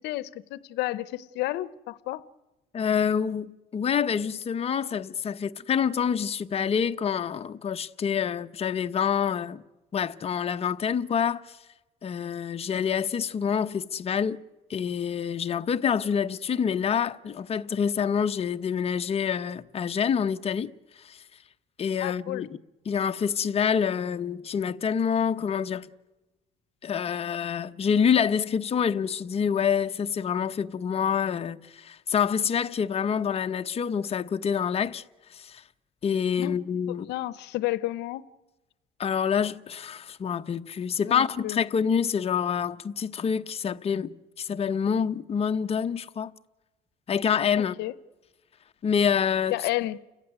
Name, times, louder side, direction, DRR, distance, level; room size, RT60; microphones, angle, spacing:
voice 1, 0.0-2.2 22.0-22.5 36.4-36.6 36.9-38.2 41.0-41.6 47.8-47.9 49.5-50.0, left 17 dB, 85° left, 0.7 m, -31 dB
voice 2, 2.7-9.6 9.9-11.4 12.0-14.4 14.7-20.7 21.0-21.2 21.8-22.5 22.8-25.9 26.8-35.0 35.3-35.6 36.0-37.1 39.0-46.3 47.1-47.8 48.8-49.6, left 7 dB, 35° left, 0.9 m, -27 dB
29.5 x 15.0 x 9.4 m
cardioid pair, 110°, 17 cm